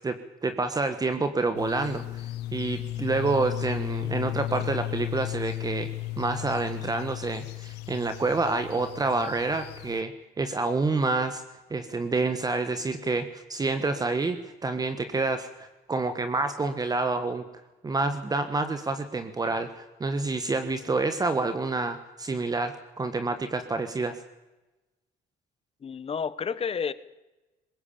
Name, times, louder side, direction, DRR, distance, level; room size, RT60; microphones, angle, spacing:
voice 1, 0.0-2.2 2.5-5.9 6.2-10.1 10.4-11.4 11.7-17.4 17.8-24.2, right 3 dB, 20° right, 9 dB, 1.5 m, -28 dB
sound 1, 1.6-10.0, left 15 dB, 85° left, 0.8 m, -35 dB
voice 2, 25.8-26.9, left 6 dB, 35° left, 16 dB, 1.2 m, -30 dB
21.0 x 18.0 x 8.7 m, 1.1 s
cardioid pair, 110°, 17 cm